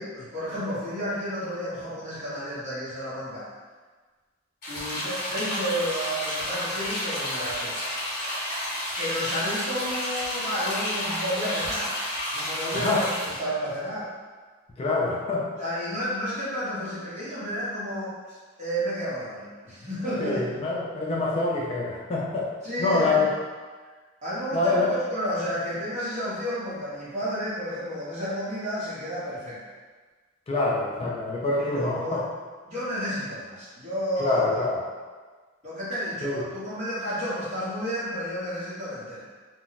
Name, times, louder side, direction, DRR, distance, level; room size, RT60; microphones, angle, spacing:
voice 1, 0.0-3.5 4.7-7.7 9.0-11.9 12.3-14.1 15.6-20.4 22.6-23.3 24.2-29.6 31.6-32.2 32.6-34.6 35.6-39.3, equal, 35° right, -10 dB, 1.1 m, -31 dB
sound 1, 4.6-13.4, left 1 dB, 45° left, 0.9 m, -31 dB
voice 2, 12.7-13.1 14.8-15.5 20.2-22.5 22.8-23.3 24.5-24.9 30.5-32.2 34.2-34.8 36.2-36.5, left 3 dB, 30° left, -4 dB, 0.4 m, -25 dB
2.4 x 2.2 x 3.9 m, 1.4 s
head